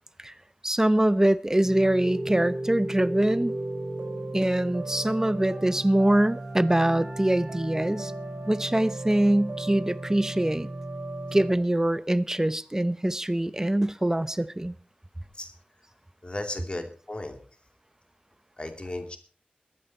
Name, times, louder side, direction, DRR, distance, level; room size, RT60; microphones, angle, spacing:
voice 1, 0.6-3.6 4.3-8.1 8.5-10.7 11.3-14.7, right 1 dB, 20° right, 0.7 m, -24 dB
sound 1, 1.6-11.5, right 1 dB, 85° right, 5.4 m, -35 dB
voice 2, 16.2-17.4 18.6-19.2, left 2 dB, 35° left, 2.7 m, -35 dB
22.0 x 9.3 x 4.3 m
wide cardioid pair, 70°, 3 cm